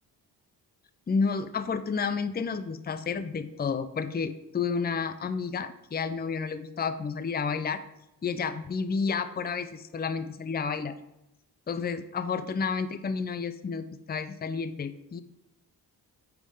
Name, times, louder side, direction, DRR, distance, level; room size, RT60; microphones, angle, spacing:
voice 1, 1.1-7.8 8.2-10.9 11.7-15.2, left 5 dB, 20° left, 11 dB, 0.6 m, -31 dB
9.4 x 3.6 x 5.0 m, 0.88 s
supercardioid pair, 50°, 45 cm